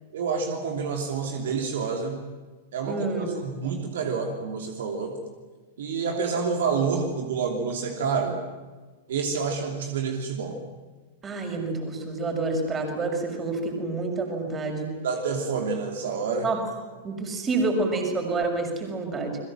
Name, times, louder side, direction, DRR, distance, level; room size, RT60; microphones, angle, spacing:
voice 1, 0.1-2.2 2.7-5.2 5.8-8.4 9.1-10.5 15.0-16.5, right 5 dB, 60° right, 3 dB, 3.0 m, -28 dB
voice 2, 2.9-3.3 11.2-14.9 16.4-16.6 17.0-19.4, right 3 dB, 20° right, 4 dB, 6.3 m, -28 dB
29.5 x 22.0 x 7.6 m, 1.3 s
figure-of-eight pair, 100°, 0 cm